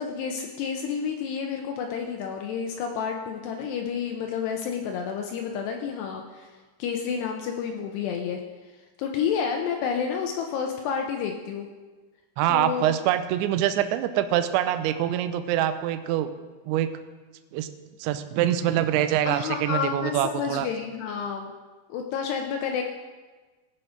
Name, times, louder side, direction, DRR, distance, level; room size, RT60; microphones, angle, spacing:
voice 1, 0.0-8.4 9.0-11.7 12.5-12.9 19.3-21.5 21.9-22.8, left 7 dB, 85° left, 3 dB, 2.4 m, -30 dB
voice 2, 12.4-16.3 16.7-16.9 17.5-17.7 18.0-20.7, right 11 dB, 80° right, 10 dB, 2.7 m, -25 dB
17.5 x 6.4 x 5.0 m, 1.3 s
omnidirectional pair, 5.8 m